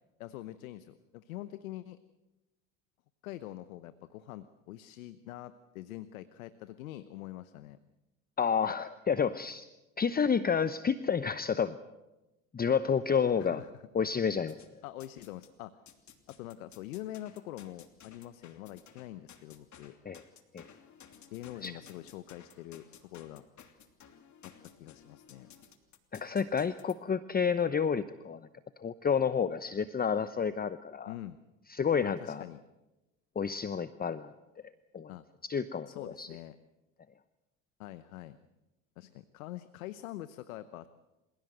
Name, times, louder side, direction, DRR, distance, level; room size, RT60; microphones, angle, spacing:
voice 1, 0.2-2.0 3.2-7.8 13.4-13.8 14.8-15.8 16.3-20.0 21.3-23.4 24.4-25.5 31.0-31.4 32.0-32.6 35.1-35.2 35.9-36.6 37.8-38.4 39.0-40.9, left 14 dB, 85° left, 13 dB, 1.0 m, -45 dB
voice 2, 8.4-9.6 10.0-11.8 12.5-13.6 13.9-14.6 20.0-20.2 20.5-20.7 21.6-21.7 26.1-28.4 28.8-31.1 31.7-32.4 33.4-34.3 34.9-35.1 35.4-35.9 36.2-36.3, left 6 dB, 20° left, 14 dB, 0.9 m, -30 dB
sound 1, 14.5-15.5 15.9-26.9, left 8 dB, 45° left, 3.0 m, -56 dB
27.5 x 16.5 x 7.9 m, 1.0 s
hypercardioid pair, 75°, 40 cm